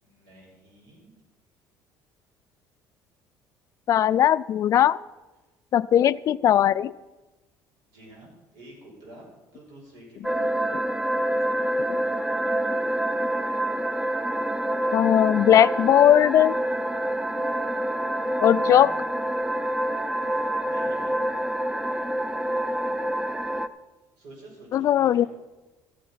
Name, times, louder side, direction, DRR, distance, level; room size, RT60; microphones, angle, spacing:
voice 1, 0.0-1.2 7.9-10.5 18.4-19.0 20.2-21.2 24.2-25.3, right 1 dB, 80° right, -2 dB, 5.2 m, -49 dB
voice 2, 3.9-5.0 5.7-6.9 14.9-16.5 18.4-18.9 24.7-25.3, left 10 dB, 50° left, 17 dB, 0.3 m, -19 dB
sound 1, 10.2-23.7, right 1 dB, 5° right, 0.5 m, -27 dB
13.5 x 8.5 x 5.6 m, 1.1 s
cardioid pair, 110°, 7 cm